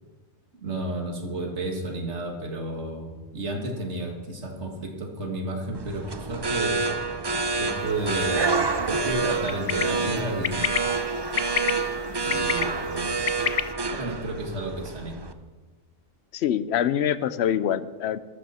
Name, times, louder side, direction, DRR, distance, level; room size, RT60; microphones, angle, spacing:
voice 1, 0.6-6.8 7.6-8.5 8.8-10.7 11.2-11.4 12.2-13.3 14.0-15.2, right 2 dB, 90° right, 3 dB, 2.1 m, -32 dB
sound 1, 5.7-15.3, right 4 dB, 30° right, 0.5 m, -28 dB
sound 2, 7.8-13.7, left 7 dB, 50° left, 0.4 m, -32 dB
voice 2, 16.3-18.2, left 10 dB, 75° left, 16 dB, 0.8 m, -25 dB
14.0 x 12.0 x 4.3 m, 1.3 s
omnidirectional pair, 1.1 m